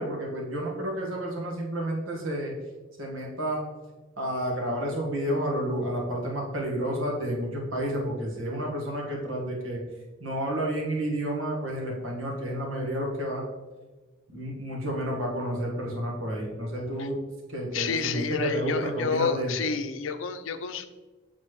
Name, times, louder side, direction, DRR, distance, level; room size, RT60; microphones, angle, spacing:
voice 1, 0.0-2.5 3.0-3.7 4.2-9.8 10.2-13.4 14.3-17.2 17.5-19.6, right 1 dB, 85° right, -2 dB, 1.5 m, -30 dB
voice 2, 17.7-20.9, left 5 dB, 80° left, 9 dB, 0.5 m, -29 dB
7.9 x 4.2 x 3.1 m, 1.2 s
head